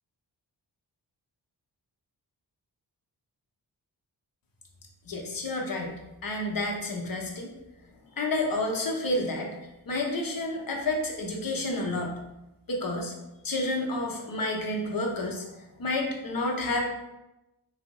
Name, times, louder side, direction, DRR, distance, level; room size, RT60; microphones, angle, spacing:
voice 1, 5.1-5.9 6.2-7.5 8.1-9.5 9.9-12.1 12.7-13.1 13.4-16.9, left 2 dB, 50° left, 1 dB, 0.8 m, -30 dB
3.2 x 2.0 x 3.6 m, 0.96 s
cardioid pair, 45°, 45 cm